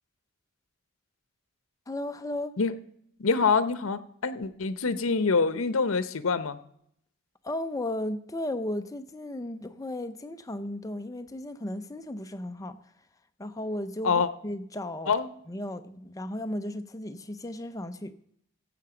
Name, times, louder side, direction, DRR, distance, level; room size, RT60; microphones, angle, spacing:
voice 1, 1.9-2.5 7.4-12.8 13.4-15.1 15.5-18.1, left 1 dB, 15° left, 0.5 m, -35 dB
voice 2, 3.2-6.6 14.0-14.3 15.1-15.3, left 4 dB, 80° left, 0.8 m, -25 dB
15.5 x 7.5 x 5.0 m
head